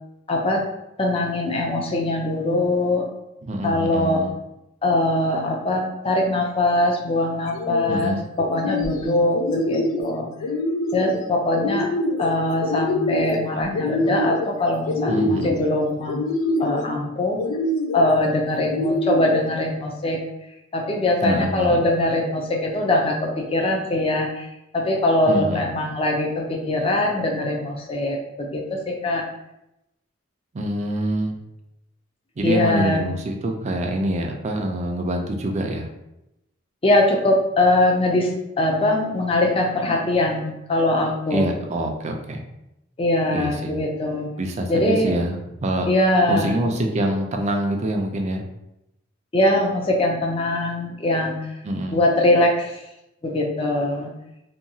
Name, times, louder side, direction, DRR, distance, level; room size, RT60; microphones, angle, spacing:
voice 1, 0.3-0.6 1.0-3.0 3.6-4.2 4.8-10.3 10.9-11.9 12.2-16.2 16.6-17.4 17.9-20.2 20.7-29.2 32.4-33.0 36.8-41.5 43.0-44.3 44.7-45.1 45.9-46.6 49.3-51.5 51.9-52.8 53.2-54.1, left 1 dB, 30° left, 0 dB, 0.4 m, -22 dB
voice 2, 3.4-4.3 7.9-8.3 15.1-15.5 21.2-21.8 25.3-25.7 30.5-31.4 32.4-35.9 41.3-42.4 43.3-43.8 44.4-45.9 46.3-48.4 51.6-52.0, right 1 dB, 35° right, 2 dB, 0.4 m, -25 dB
sound 1, 7.5-8.0 8.4-9.0 9.3-10.1 10.4-11.1 11.5-12.3 12.6-13.4 13.7-14.5 14.8-15.6 16.1-16.8 17.4-18.0 18.6-19.4, left 1 dB, 90° left, 0.4 m, -25 dB
2.8 x 2.3 x 2.6 m, 0.87 s
head